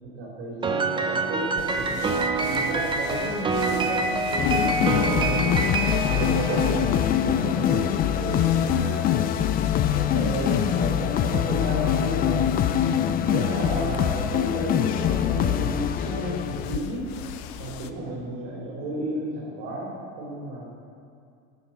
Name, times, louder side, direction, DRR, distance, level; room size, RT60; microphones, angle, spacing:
voice 1, 0.0-2.1 2.4-5.4 6.0-9.2 10.1-12.4 13.3-17.1 17.5-20.7, right 2 dB, 60° right, -4 dB, 3.3 m, -32 dB
Piano, 0.6-7.1, right 3 dB, 15° right, 0.7 m, -26 dB
sound 1, 1.6-17.9, left 9 dB, 85° left, 0.7 m, -40 dB
sound 2, 4.4-16.8, left 9 dB, 30° left, 0.4 m, -24 dB
13.5 x 7.2 x 5.6 m, 2.4 s
supercardioid pair, 140°, 31 cm